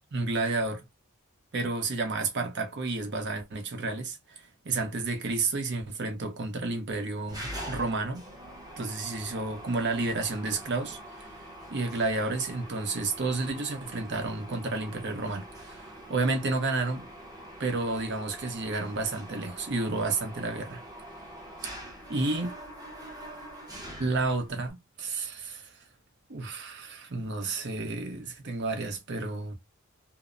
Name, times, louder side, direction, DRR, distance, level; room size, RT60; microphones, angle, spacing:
voice 1, 0.1-0.8 1.5-8.2 8.8-11.3 11.7-17.1 17.6-20.8 22.1-22.6 24.0-25.7 26.3-29.5, right 3 dB, 55° right, 0.7 m, -31 dB
Mechanisms, 7.3-24.7, equal, 20° right, 0.7 m, -44 dB
2.7 x 2.1 x 2.4 m
head